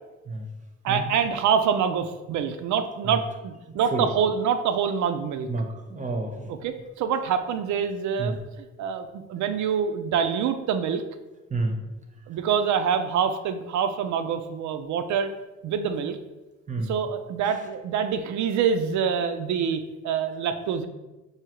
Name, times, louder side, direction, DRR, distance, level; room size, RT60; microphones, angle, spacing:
voice 1, 0.8-5.5 6.5-8.4 8.8-11.0 12.3-15.3 15.6-16.2 16.8-20.9, right 7 dB, 70° right, 9 dB, 0.4 m, -26 dB
voice 2, 5.5-6.5 8.2-8.3 11.5-11.8 16.7-16.9, right 3 dB, 25° right, 3 dB, 0.7 m, -29 dB
4.9 x 2.7 x 2.9 m, 1.1 s
cardioid pair, 90°, 30 cm